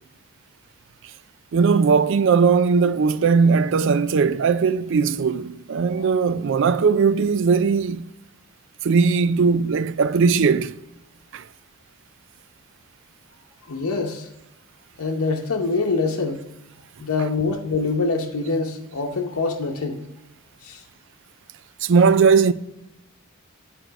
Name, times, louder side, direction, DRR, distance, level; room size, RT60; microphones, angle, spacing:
voice 1, 1.5-8.0 8.8-10.7 11.3-11.4 21.8-22.5, right 5 dB, 60° right, 0.4 m, -18 dB
voice 2, 13.7-14.3 15.0-16.4 17.0-20.0 20.6-20.8, left 3 dB, 85° left, 0.8 m, -25 dB
9.1 x 4.5 x 5.1 m
head